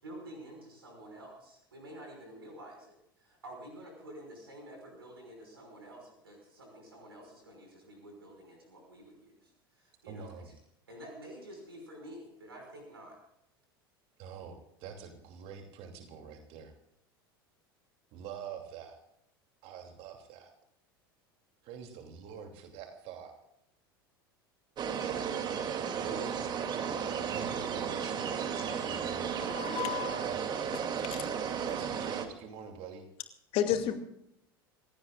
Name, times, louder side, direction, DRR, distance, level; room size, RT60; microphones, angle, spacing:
voice 1, 0.0-10.5 10.9-13.2, right 1 dB, 80° right, 2 dB, 5.5 m, -49 dB
voice 2, 10.1-10.5 14.2-16.7 18.1-19.0 19.6-20.5 21.6-23.4 26.0-26.6 27.3-29.6 30.3-30.7 31.3-33.1, right 7 dB, 50° right, 4 dB, 2.8 m, -46 dB
sound 1, 24.8-32.3, right 7 dB, 35° right, 2.5 m, -34 dB
voice 3, 29.2-30.4 30.7-30.8 31.1-31.3 33.5-33.9, left 10 dB, 50° left, 6 dB, 2.4 m, -33 dB
27.5 x 17.0 x 2.4 m, 0.77 s
figure-of-eight pair, 75°, 12 cm